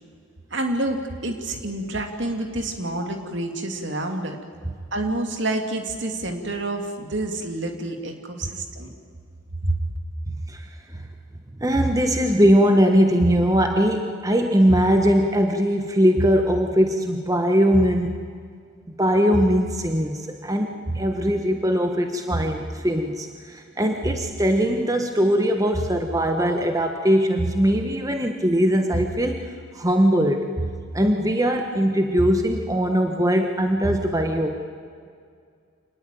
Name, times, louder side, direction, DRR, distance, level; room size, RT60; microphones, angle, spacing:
voice 1, 0.5-4.4 4.9-8.9 9.6-9.8, right 2 dB, 60° right, 5 dB, 2.7 m, -28 dB
voice 2, 10.3-10.7 11.6-18.2 18.9-29.4 29.7-34.5, equal, 15° right, 5 dB, 1.3 m, -21 dB
26.5 x 19.5 x 9.3 m, 2.2 s
head